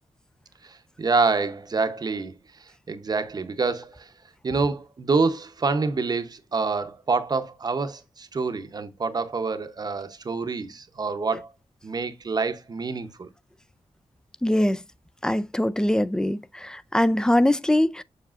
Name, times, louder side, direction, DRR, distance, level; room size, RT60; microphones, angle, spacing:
voice 1, 0.6-2.4 2.9-4.1 4.4-11.5 11.8-13.3, right 4 dB, 35° right, 0.7 m, -27 dB
voice 2, 14.4-14.8 15.2-18.0, left 1 dB, 5° left, 0.3 m, -22 dB
7.2 x 6.5 x 2.4 m
wide cardioid pair, 175°, 11 cm